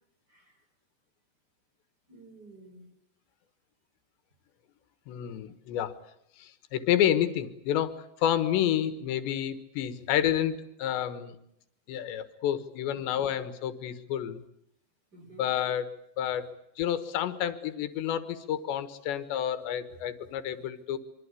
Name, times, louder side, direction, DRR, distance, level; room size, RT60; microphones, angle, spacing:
voice 1, 0.3-0.6 2.1-2.9 10.3-10.4 12.9-13.3 15.1-15.5, right 2 dB, 20° right, 4 dB, 6.7 m, -52 dB
voice 2, 5.1-5.9 6.4-11.4 11.9-14.4 15.4-15.9 16.2-21.0, left 10 dB, 85° left, 12 dB, 3.6 m, -29 dB
26.0 x 24.5 x 8.4 m, 0.75 s
omnidirectional pair, 4.9 m